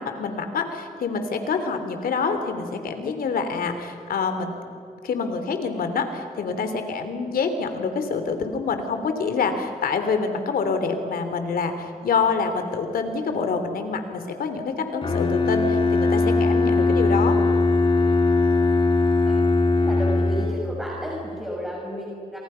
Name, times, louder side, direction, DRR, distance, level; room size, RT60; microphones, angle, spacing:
voice 1, 0.0-4.6 5.0-17.4, left 5 dB, 80° left, 7 dB, 3.2 m, -26 dB
Bowed string instrument, 15.0-20.9, left 3 dB, 35° left, 2.7 m, -20 dB
voice 2, 19.8-22.4, equal, ahead, -4 dB, 6.5 m, -32 dB
28.5 x 27.0 x 5.8 m, 2.7 s
cardioid pair, 90°, 15 cm